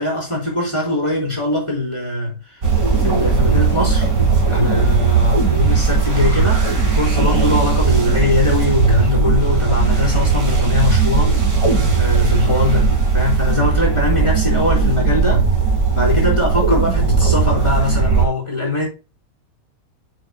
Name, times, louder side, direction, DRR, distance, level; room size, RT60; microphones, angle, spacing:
voice 1, 0.0-2.3 3.0-4.1 4.4-15.5 15.9-18.9, left 2 dB, 20° left, 4.1 m, -21 dB
sound 1, 2.6-18.3, right 4 dB, 75° right, 2.9 m, -17 dB
7.8 x 7.6 x 2.2 m
omnidirectional pair, 1.5 m